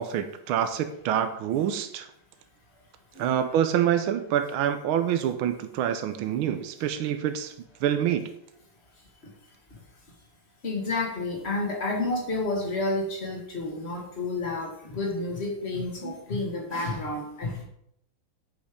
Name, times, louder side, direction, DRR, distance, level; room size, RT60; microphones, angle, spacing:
voice 1, 0.0-2.1 3.2-7.5 7.8-8.3, right 9 dB, 85° right, 9 dB, 1.6 m, -26 dB
voice 2, 10.6-17.6, left 2 dB, 30° left, 1 dB, 1.8 m, -30 dB
8.3 x 5.3 x 5.1 m, 0.73 s
omnidirectional pair, 2.3 m